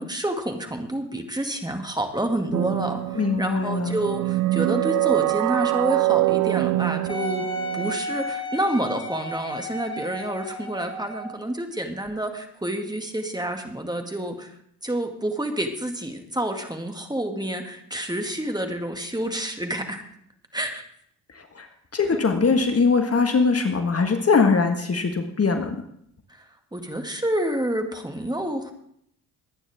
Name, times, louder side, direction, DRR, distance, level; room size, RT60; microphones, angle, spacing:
voice 1, 0.0-14.5 14.8-20.0 20.5-20.8 22.1-22.2 26.3-28.7, right 1 dB, 10° right, 4 dB, 2.1 m, -29 dB
sound 1, 2.5-8.0, right 19 dB, 45° right, 0.4 m, -24 dB
voice 2, 3.2-3.9 21.5-21.7 21.9-25.7, left 4 dB, 30° left, 6 dB, 1.6 m, -21 dB
Wind instrument woodwind instrument, 7.1-11.4 12.1-12.2, equal, 10° left, 3.6 m, -33 dB
22.0 x 9.7 x 3.6 m, 0.69 s
hypercardioid pair, 50°, 45 cm